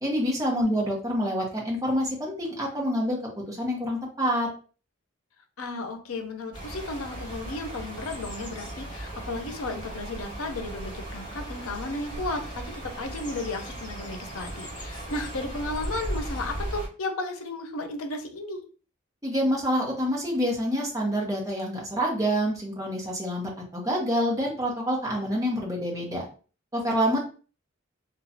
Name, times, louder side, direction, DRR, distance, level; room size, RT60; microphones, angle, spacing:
voice 1, 0.0-4.5 19.2-26.2 26.7-27.2, equal, 15° right, -2 dB, 0.8 m, -27 dB
voice 2, 5.6-18.6, left 2 dB, 90° left, 5 dB, 0.6 m, -34 dB
sound 1, 6.5-16.9, right 1 dB, 20° left, 1.5 m, -37 dB
3.0 x 2.3 x 2.6 m, 0.38 s
head